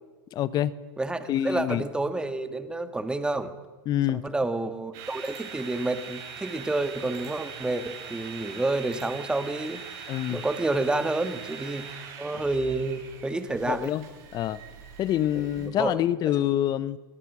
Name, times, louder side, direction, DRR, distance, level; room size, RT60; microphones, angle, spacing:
voice 1, 0.3-0.7 1.3-1.8 3.9-4.2 10.1-10.4 13.7-14.0 14.3-14.6 15.0-17.0, left 12 dB, 35° left, 18 dB, 1.0 m, -26 dB
voice 2, 1.0-3.5 4.1-9.8 10.3-11.9 12.2-13.9 15.3-16.0, right 2 dB, 5° right, 10 dB, 1.6 m, -29 dB
sound 1, 4.9-15.7, right 6 dB, 50° right, 7.8 m, -42 dB
23.5 x 19.0 x 6.3 m, 1.2 s
hypercardioid pair, 120°, 12 cm